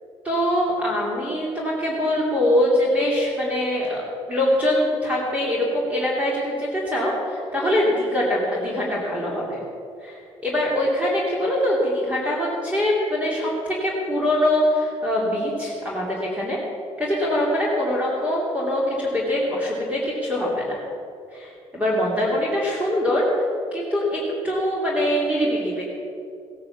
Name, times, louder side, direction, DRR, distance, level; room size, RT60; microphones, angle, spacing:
voice 1, 0.2-4.0 4.3-9.6 10.0-16.6 17.0-20.8 21.3-23.3 23.7-25.8, left 1 dB, 10° right, -5 dB, 2.8 m, -23 dB
17.0 x 9.5 x 7.1 m, 2.5 s
cardioid pair, 155°, 12 cm